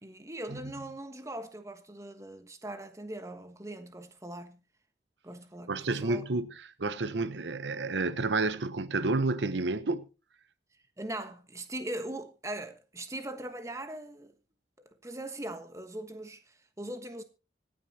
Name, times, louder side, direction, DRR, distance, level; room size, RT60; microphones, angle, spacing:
voice 1, 0.0-4.6 5.2-6.2 11.0-14.3 14.8-17.2, right 1 dB, 15° right, 1.3 m, -40 dB
voice 2, 5.7-10.1, right 3 dB, 90° right, 0.9 m, -30 dB
25.5 x 9.2 x 2.8 m
head